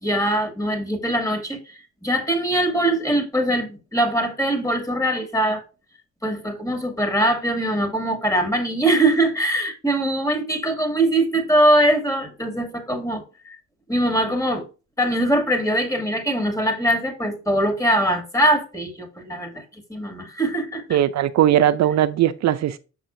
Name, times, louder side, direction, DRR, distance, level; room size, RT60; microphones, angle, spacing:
voice 1, 0.0-5.6 6.2-13.6 13.9-14.7 15.0-21.0, right 1 dB, 10° left, 2.2 m, -22 dB
voice 2, 20.9-22.8, right 11 dB, 65° right, 0.5 m, -19 dB
6.7 x 6.0 x 2.6 m
cardioid pair, 90°, 30 cm